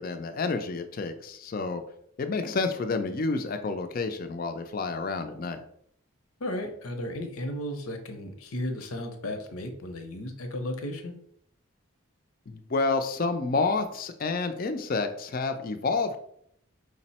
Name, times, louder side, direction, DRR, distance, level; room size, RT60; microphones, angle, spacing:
voice 1, 0.0-1.8 2.2-5.6 12.5-16.2, left 3 dB, 40° left, 7 dB, 0.4 m, -29 dB
voice 2, 6.4-11.1, left 1 dB, 85° left, 5 dB, 0.7 m, -34 dB
5.0 x 2.0 x 4.1 m, 0.70 s
head